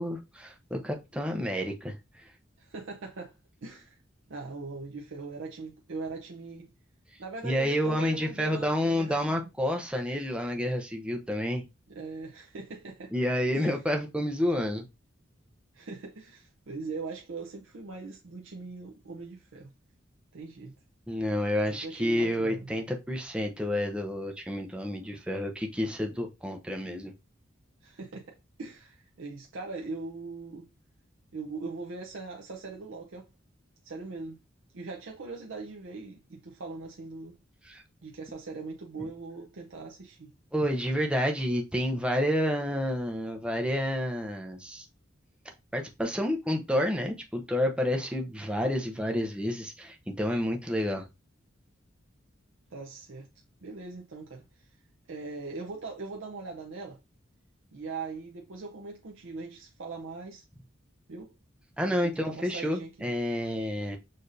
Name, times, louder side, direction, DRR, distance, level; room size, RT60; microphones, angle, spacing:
voice 1, 0.0-2.0 7.4-11.6 13.1-14.8 21.1-27.1 37.6-37.8 39.0-39.1 40.5-44.9 45.7-51.1 61.8-64.0, equal, 5° right, 0.6 m, -29 dB
voice 2, 2.6-3.3 3.6-4.0 4.3-6.7 7.2-9.2 11.9-13.1 13.5-13.8 15.7-19.7 20.3-20.7 21.7-22.7 27.8-30.7 31.3-33.3 33.8-34.4 34.7-37.4 38.0-40.3 52.7-53.3 53.6-54.8 55.1-57.0 57.7-60.4 61.1-61.3 61.9-63.2, right 3 dB, 75° right, 0.6 m, -41 dB
6.4 x 2.7 x 2.6 m
head